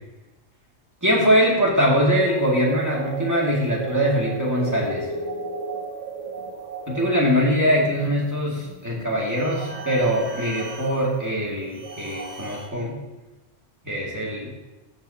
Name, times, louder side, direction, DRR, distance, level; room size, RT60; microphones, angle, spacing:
voice 1, 1.0-5.1 6.9-13.0 13.8-14.5, equal, 15° right, -4 dB, 2.2 m, -22 dB
sound 1, 2.2-12.7, right 3 dB, 75° right, 1.7 m, -35 dB
14.0 x 6.9 x 2.8 m, 1.1 s
omnidirectional pair, 1.3 m